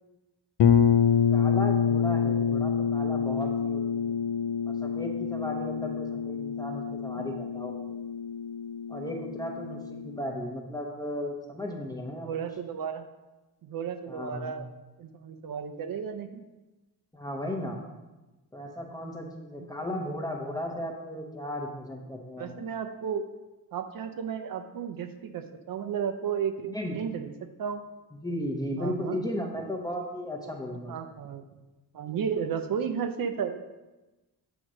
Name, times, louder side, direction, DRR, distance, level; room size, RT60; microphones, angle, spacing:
sound 1, 0.6-10.3, left 7 dB, 85° left, 0.7 m, -27 dB
voice 1, 1.3-4.1 4.7-7.7 8.9-12.4 14.1-14.5 17.1-17.8 18.5-22.6 26.7-27.0 28.2-30.9, left 1 dB, 10° left, 1 dB, 0.8 m, -35 dB
voice 2, 9.6-10.1 12.2-13.1 13.6-14.7 15.0-16.4 22.4-23.3 23.7-27.3 27.6-27.8 28.8-29.2 30.9-31.4 31.9-33.6, right 7 dB, 60° right, 8 dB, 0.5 m, -33 dB
8.0 x 3.0 x 6.2 m, 1.1 s
wide cardioid pair, 170°, 40 cm